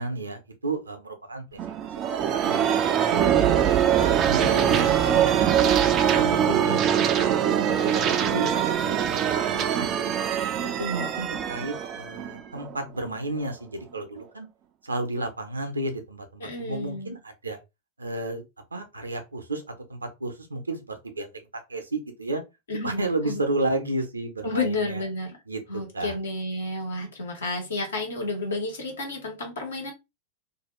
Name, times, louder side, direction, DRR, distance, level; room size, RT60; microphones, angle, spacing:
voice 1, 0.0-1.6 1.9-3.2 3.5-5.3 5.6-5.8 6.1-10.1 10.8-14.5 14.8-17.6 18.0-18.4 18.7-19.6 19.9-21.3 21.7-22.4 22.8-25.0 25.5-26.2, right 2 dB, 80° right, 0.7 m, -33 dB
sound 1, 1.6-13.1, right 9 dB, 35° right, 0.4 m, -23 dB
voice 2, 4.4-5.2 6.8-7.1 16.4-17.1 22.7-23.4 24.4-25.3 25.7-29.9, left 2 dB, 70° left, 1.2 m, -31 dB
2.6 x 2.3 x 3.0 m
figure-of-eight pair, 90°, 0 cm